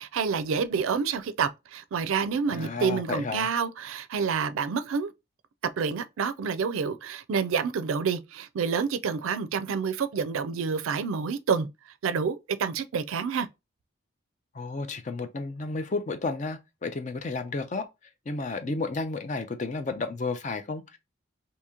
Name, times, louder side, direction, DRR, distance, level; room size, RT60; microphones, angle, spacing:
voice 1, 0.0-5.1 5.8-11.7 12.0-13.5, right 6 dB, 85° right, 0.4 m, -28 dB
voice 2, 2.5-3.5 14.5-17.9 18.3-21.0, left 3 dB, 35° left, 0.4 m, -32 dB
2.9 x 2.7 x 3.5 m
head